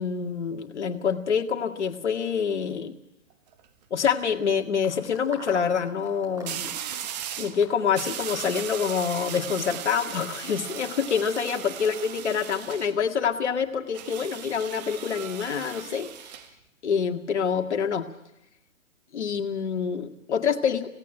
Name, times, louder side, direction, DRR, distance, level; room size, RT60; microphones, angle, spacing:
voice 1, 0.0-2.9 3.9-6.7 7.4-16.1 16.8-18.1 19.1-20.9, left 7 dB, 55° left, 5 dB, 2.1 m, -26 dB
sound 1, 3.3-3.6 6.5-7.6 7.9-12.9 13.9-16.5, right 9 dB, 30° right, 1.3 m, -37 dB
sound 2, 4.8-9.2, equal, 10° right, 5.3 m, -44 dB
19.0 x 17.0 x 8.9 m, 0.87 s
figure-of-eight pair, 130°, 40 cm